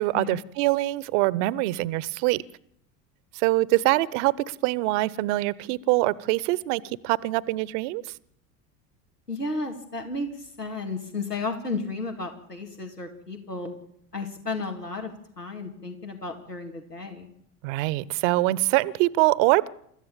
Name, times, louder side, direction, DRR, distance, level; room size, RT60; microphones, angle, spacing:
voice 1, 0.0-2.4 3.3-8.0 17.6-19.7, right 19 dB, 50° right, 20 dB, 1.0 m, -24 dB
voice 2, 9.3-13.8 14.1-17.3, left 3 dB, 90° left, 4 dB, 2.3 m, -33 dB
28.5 x 14.0 x 7.4 m, 0.74 s
figure-of-eight pair, 70°, 47 cm